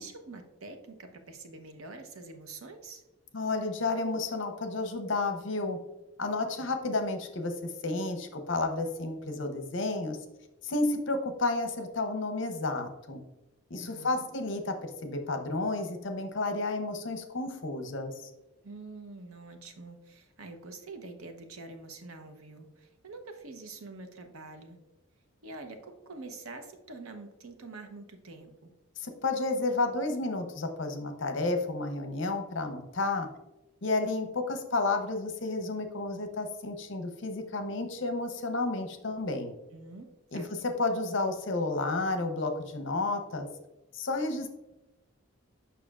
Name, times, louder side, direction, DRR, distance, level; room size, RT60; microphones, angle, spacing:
voice 1, 0.0-3.0 13.8-14.3 18.6-24.8 25.4-28.7 39.7-40.5, right 3 dB, 90° right, 6 dB, 0.8 m, -46 dB
voice 2, 3.3-5.8 6.2-10.2 10.6-13.2 13.7-18.1 29.0-33.3 33.8-39.5 40.3-43.5 43.9-44.5, left 2 dB, 60° left, 6 dB, 0.7 m, -31 dB
6.9 x 5.8 x 2.4 m, 1.0 s
head